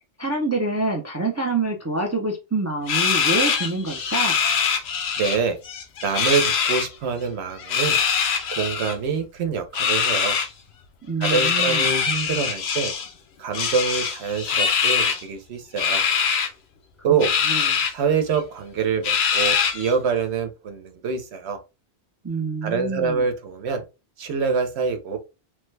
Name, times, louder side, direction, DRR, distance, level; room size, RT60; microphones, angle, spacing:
voice 1, 0.2-4.4 11.0-12.0 17.5-17.7 22.2-23.3, right 3 dB, 25° right, 1 dB, 0.3 m, -26 dB
sound 1, 2.9-5.4 5.6-6.9 7.6-8.9 9.7-10.5 11.2-13.1 13.5-15.2 15.8-16.5 17.2-17.9 18.3-18.4 19.0-19.9, left 6 dB, 75° left, 0.9 m, -23 dB
voice 2, 5.2-5.6 6.0-8.0 8.5-10.4 11.2-12.9 13.4-16.0 17.0-17.3 17.9-21.6 22.6-23.8 24.2-25.2, right 6 dB, 80° right, 7 dB, 0.9 m, -25 dB
3.2 x 2.1 x 3.2 m, 0.28 s
omnidirectional pair, 1.1 m